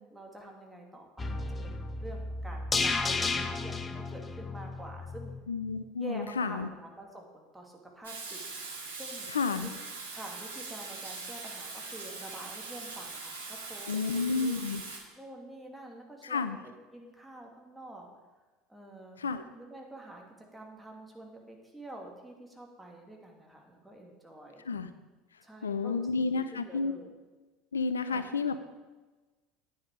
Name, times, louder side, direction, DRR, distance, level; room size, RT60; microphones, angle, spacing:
voice 1, 0.0-5.3 6.0-8.4 9.0-9.3 9.6-9.7 10.1-14.6 15.2-18.1 18.7-19.2 19.5-24.6 25.4-26.1 26.5-27.1 28.1-28.3, right 1 dB, 5° right, 0 dB, 2.5 m, -47 dB
sound 1, 1.2-5.4 5.7-5.8, left 3 dB, 25° left, 0.8 m, -33 dB
voice 2, 5.5-6.7 9.3-9.7 13.9-14.8 16.2-16.6 19.2-19.4 24.7-24.9 25.6-26.9 27.7-28.6, left 4 dB, 80° left, 12 dB, 0.5 m, -31 dB
Water tap faucet / Sink (filling or washing), 8.0-15.0, right 3 dB, 75° right, 2.0 m, -42 dB
10.5 x 9.6 x 4.9 m, 1.2 s
figure-of-eight pair, 70°, 0 cm